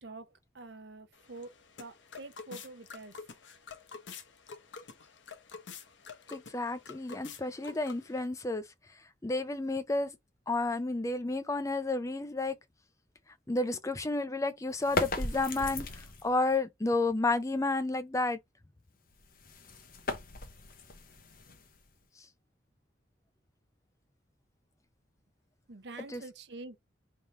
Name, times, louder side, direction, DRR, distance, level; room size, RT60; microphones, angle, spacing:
voice 1, 0.0-3.2 25.7-26.8, right 2 dB, 65° right, 0.8 m, -47 dB
sound 1, 1.1-8.3, left 5 dB, 85° left, 0.8 m, -49 dB
voice 2, 6.3-8.6 9.2-10.1 10.5-12.6 13.5-15.9 16.2-18.4 26.0-26.2, left 2 dB, 15° left, 0.5 m, -31 dB
sound 2, 14.7-16.4 19.1-22.0, left 2 dB, 50° left, 0.8 m, -37 dB
3.5 x 2.7 x 4.3 m
head